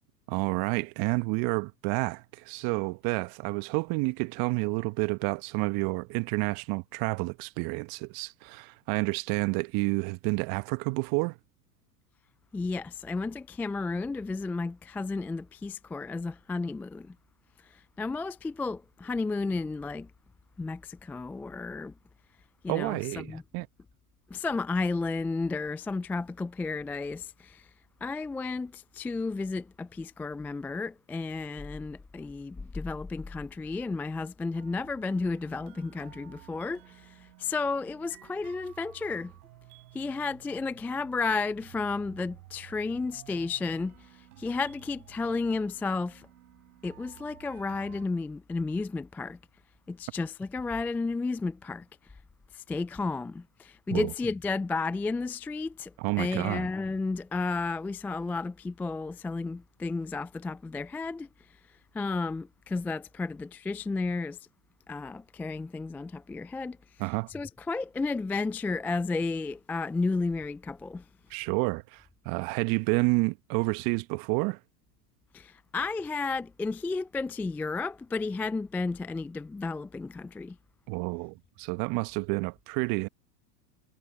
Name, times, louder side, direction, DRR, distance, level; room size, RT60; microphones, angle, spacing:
voice 1, 0.3-11.4 22.7-23.7 53.9-54.1 56.0-56.7 67.0-67.3 71.3-74.6 80.9-83.1, right 28 dB, 45° right, 1.2 m, -29 dB
voice 2, 12.5-17.1 17.6-20.1 20.6-21.9 22.6-23.4 24.3-27.7 28.0-39.3 39.9-46.3 46.8-49.4 49.9-51.9 52.5-61.3 61.9-64.4 64.9-66.8 67.3-71.0 75.3-80.6, left 3 dB, 5° left, 0.3 m, -32 dB
sound 1, 34.5-48.1, right 17 dB, 65° right, 7.3 m, -53 dB
hypercardioid pair, 95°, 50 cm